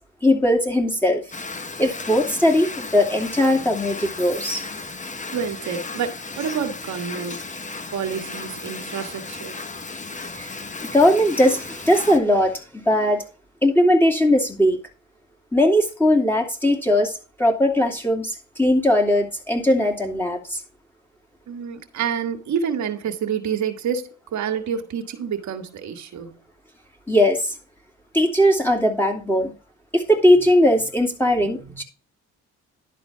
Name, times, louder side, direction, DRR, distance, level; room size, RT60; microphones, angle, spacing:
voice 1, 0.2-1.2 1.8-4.6 10.4-10.5 10.9-12.6 12.9-13.2 13.6-14.8 15.5-17.1 17.4-20.6 27.1-27.5 28.1-29.5 29.9-31.8, left 1 dB, 5° left, 2.7 m, -19 dB
sound 1, 1.3-12.2, left 3 dB, 25° left, 1.1 m, -35 dB
voice 2, 5.3-7.4 7.9-9.6 21.5-26.4, right 7 dB, 70° right, 1.6 m, -28 dB
11.0 x 4.2 x 5.6 m
cardioid pair, 90°, 30 cm